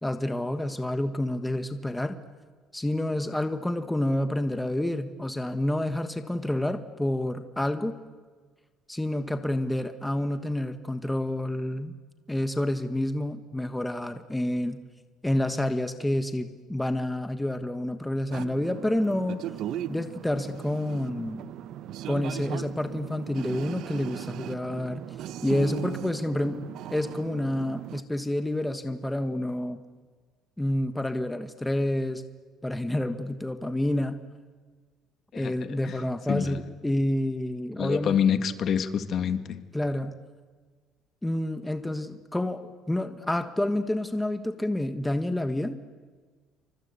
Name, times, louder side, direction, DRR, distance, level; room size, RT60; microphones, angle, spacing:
voice 1, 0.0-2.2 2.7-8.0 8.9-11.9 12.3-14.8 15.2-19.4 19.9-21.5 22.1-25.1 25.4-26.6 26.9-29.8 30.6-32.2 32.6-34.2 35.3-38.2 39.7-40.1 41.2-45.8, left 1 dB, 5° left, 8 dB, 1.4 m, -29 dB
sound 1, 18.3-28.0, right 11 dB, 65° right, 0.8 m, -38 dB
voice 2, 35.3-36.0 36.3-36.6 37.8-39.6, left 8 dB, 50° left, 9 dB, 1.8 m, -27 dB
28.0 x 25.5 x 8.3 m, 1.5 s
cardioid pair, 140°, 0 cm